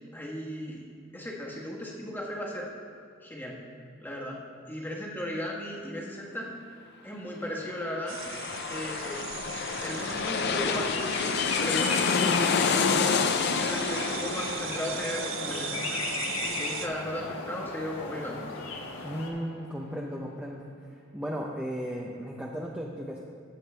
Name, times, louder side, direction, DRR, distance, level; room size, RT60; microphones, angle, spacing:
voice 1, 0.1-0.9 1.1-2.7 3.2-3.6 4.0-4.4 4.7-6.5 7.0-8.2 8.7-9.2 9.8-13.1 13.6-16.0 16.4-18.4, equal, 10° left, -3 dB, 1.3 m, -36 dB
sound 1, 7.7-19.1 19.4-19.5, left 5 dB, 55° left, 0.5 m, -30 dB
sound 2, 8.1-16.9, right 10 dB, 65° right, 0.5 m, -39 dB
sound 3, 9.7-19.3, left 3 dB, 90° left, 1.3 m, -37 dB
voice 2, 19.0-20.7 21.1-23.2, equal, 5° right, -2 dB, 0.6 m, -35 dB
15.5 x 6.5 x 3.3 m, 2.6 s
head